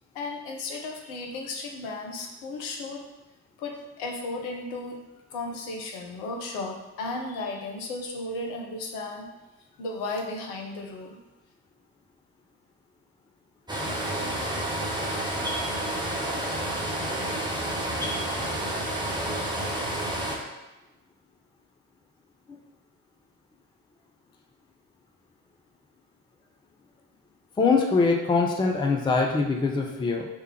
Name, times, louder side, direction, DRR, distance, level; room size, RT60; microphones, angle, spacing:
voice 1, 0.1-3.0 3.6-5.0 5.3-9.3 9.8-11.2, left 2 dB, 65° left, 1 dB, 0.8 m, -34 dB
sound 1, 13.7-20.4, right 1 dB, 10° right, 1.1 m, -29 dB
voice 2, 27.6-30.3, left 4 dB, 10° left, 2 dB, 0.5 m, -23 dB
3.3 x 3.2 x 4.7 m, 1.0 s
figure-of-eight pair, 45°, 47 cm